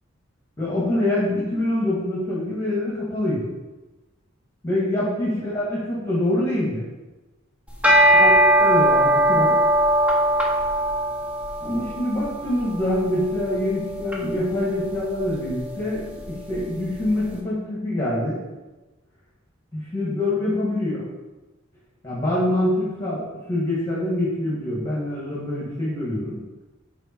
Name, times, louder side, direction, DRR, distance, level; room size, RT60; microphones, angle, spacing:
voice 1, 0.6-3.5 4.6-6.8 8.2-9.6 11.6-18.4 19.7-21.1 22.0-26.4, left 1 dB, 15° left, -7 dB, 1.8 m, -25 dB
sound 1, 7.7-17.0, right 1 dB, 5° right, 0.9 m, -21 dB
7.0 x 4.8 x 4.5 m, 1.1 s
head